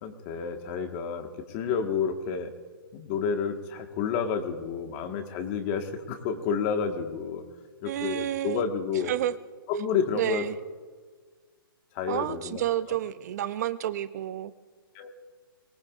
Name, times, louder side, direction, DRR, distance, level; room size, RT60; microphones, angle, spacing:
voice 1, 0.0-2.5 2.9-7.4 7.8-9.2 9.7-10.5 11.9-12.6 12.9-13.0 14.9-15.1, left 6 dB, 30° left, 6 dB, 1.5 m, -30 dB
voice 2, 7.8-8.6 9.1-9.3 10.2-10.5 12.1-14.5, right 12 dB, 45° right, 14 dB, 0.5 m, -30 dB
23.5 x 19.0 x 2.5 m, 1.5 s
hypercardioid pair, 145°, 12 cm